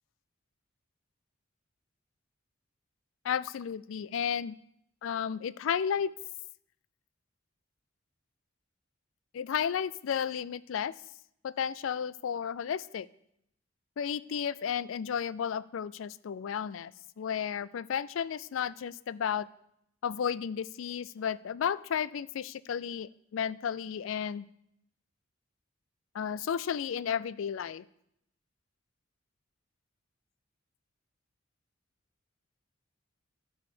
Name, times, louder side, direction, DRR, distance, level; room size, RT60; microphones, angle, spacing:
voice 1, 3.2-4.6 5.0-6.1 9.3-10.9 11.4-13.1 14.0-19.5 20.0-24.5 26.1-27.9, left 8 dB, 70° left, 19 dB, 0.4 m, -33 dB
11.5 x 4.8 x 6.1 m, 0.75 s
head